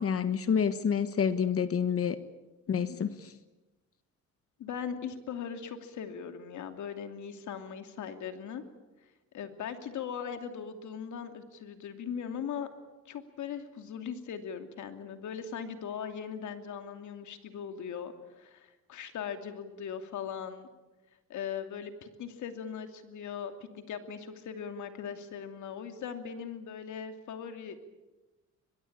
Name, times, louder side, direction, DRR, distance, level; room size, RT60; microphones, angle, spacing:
voice 1, 0.0-2.2 2.7-3.3, left 7 dB, 50° left, 12 dB, 1.3 m, -28 dB
voice 2, 4.6-8.6 9.3-12.7 13.1-20.7 21.3-27.8, left 7 dB, 75° left, 7 dB, 2.7 m, -39 dB
23.0 x 22.0 x 8.7 m, 1.1 s
cardioid pair, 90°, 30 cm